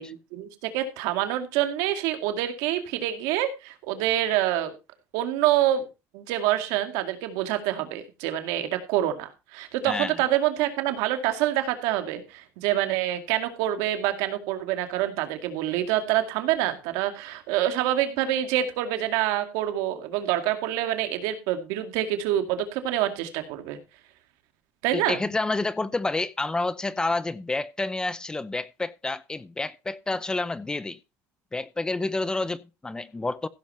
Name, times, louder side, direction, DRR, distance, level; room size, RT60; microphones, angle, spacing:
voice 1, 0.0-4.7 5.1-5.8 6.1-23.8 24.8-25.2, right 12 dB, 85° right, 2.2 m, -26 dB
voice 2, 9.9-10.2 24.9-31.0 31.5-33.5, left 2 dB, 15° left, 0.7 m, -29 dB
15.5 x 7.3 x 4.4 m
cardioid pair, 120°, 6 cm